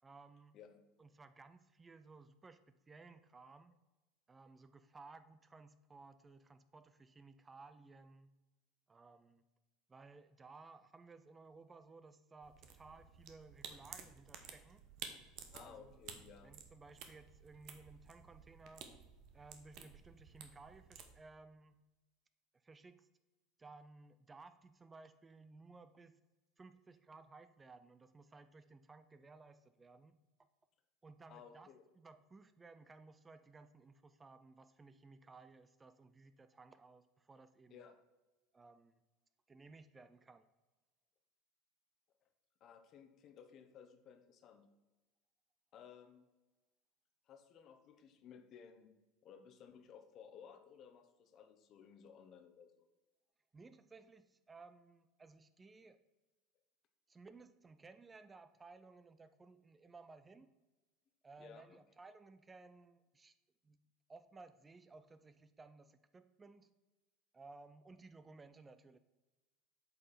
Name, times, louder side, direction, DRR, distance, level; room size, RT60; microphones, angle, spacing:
voice 1, 0.0-0.6 1.0-3.8 4.3-8.3 8.9-9.4 9.9-14.8 15.6-16.0 16.4-19.0 19.3-21.8 22.6-23.1 23.6-26.2 26.6-30.5 31.0-31.7 32.0-37.8 38.5-38.9 39.5-40.5 53.5-56.0 57.1-60.5 61.2-63.4 63.6-63.8 64.1-66.7 67.3-69.0, right 3 dB, 20° right, 12 dB, 0.5 m, -58 dB
sound 1, 12.4-21.1, right 7 dB, 55° right, 1.0 m, -54 dB
voice 2, 15.5-16.5 31.3-31.8 37.7-38.0 42.6-44.7 45.7-46.3 47.3-48.9 49.2-52.8 61.4-61.8, left 7 dB, 45° left, 8 dB, 1.0 m, -58 dB
8.0 x 5.3 x 4.3 m, 1.1 s
hypercardioid pair, 75°, 0 cm